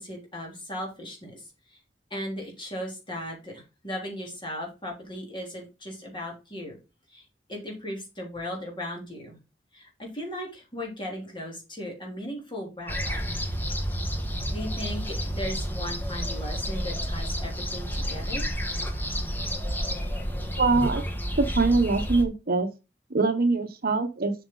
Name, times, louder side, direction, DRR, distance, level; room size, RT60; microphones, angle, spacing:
voice 1, 0.0-1.8 2.1-6.8 7.1-7.2 7.5-9.4 9.7-13.2 14.5-18.5, equal, 25° left, -1 dB, 3.5 m, -37 dB
sound 1, 12.9-22.2, equal, 10° left, 1.3 m, -30 dB
voice 2, 20.6-21.0 21.4-22.7 23.1-24.3, right 3 dB, 55° right, 8 dB, 1.0 m, -23 dB
7.8 x 6.3 x 3.9 m, 0.28 s
head